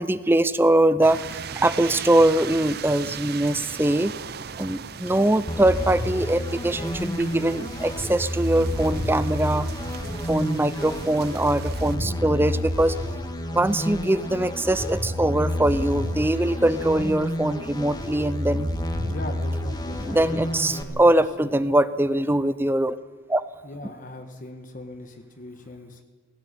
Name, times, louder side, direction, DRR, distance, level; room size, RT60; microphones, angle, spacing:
voice 1, 0.0-4.1 4.6-10.0 10.3-13.0 13.5-18.7 20.0-23.0 23.3-23.4, right 1 dB, 10° right, 15 dB, 0.6 m, -22 dB
sound 1, 1.0-12.0, right 7 dB, 50° right, 0.6 m, -38 dB
sound 2, 5.5-20.8, left 1 dB, 20° left, 1.6 m, -29 dB
voice 2, 19.1-21.1 21.4-21.6 23.6-26.0, left 1 dB, 40° left, 6 dB, 1.4 m, -39 dB
18.0 x 17.0 x 9.7 m, 1.4 s
head